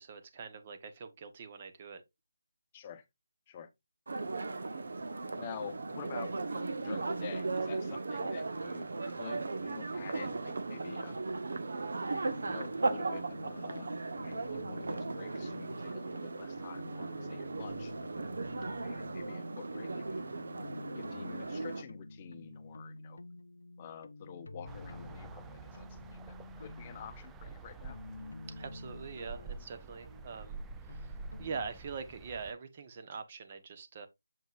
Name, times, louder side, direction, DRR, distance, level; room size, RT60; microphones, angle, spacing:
voice 1, 0.0-2.0 28.6-34.1, right 5 dB, 30° right, 1.2 m, -43 dB
voice 2, 2.7-3.0 3.5-3.7 5.4-11.2 12.4-13.9 14.2-17.9 18.8-20.3 20.9-23.2 23.8-28.0, left 8 dB, 25° left, 0.8 m, -48 dB
sound 1, 4.1-21.8, right 3 dB, 65° right, 1.1 m, -37 dB
sound 2, 12.2-31.7, left 2 dB, 80° left, 0.7 m, -49 dB
sound 3, 24.6-32.5, right 4 dB, 10° right, 0.4 m, -48 dB
7.6 x 5.2 x 2.5 m
figure-of-eight pair, 165°, 0 cm